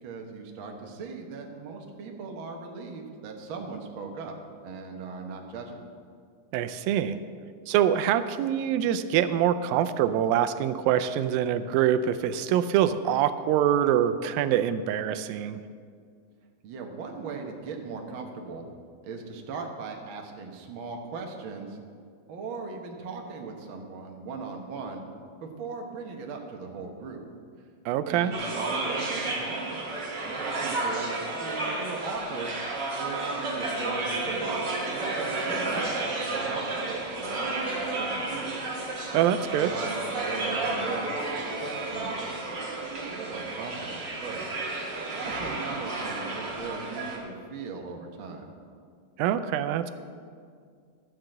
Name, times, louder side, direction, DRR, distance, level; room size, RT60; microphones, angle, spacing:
voice 1, 0.0-4.3 4.6-5.8 16.6-18.7 19.0-21.8 22.3-25.0 25.4-27.2 28.1-29.9 30.2-32.5 32.9-38.6 39.6-40.0 40.3-42.1 42.5-44.5 45.0-48.5, right 4 dB, 70° right, 2 dB, 1.2 m, -39 dB
voice 2, 6.5-7.2 7.7-15.6 27.9-28.3 39.1-39.7 49.2-49.9, right 10 dB, 85° right, 11 dB, 2.3 m, -25 dB
sound 1, 28.3-47.2, right 2 dB, 45° right, 1.5 m, -32 dB
13.0 x 5.9 x 7.7 m, 2.1 s
omnidirectional pair, 4.0 m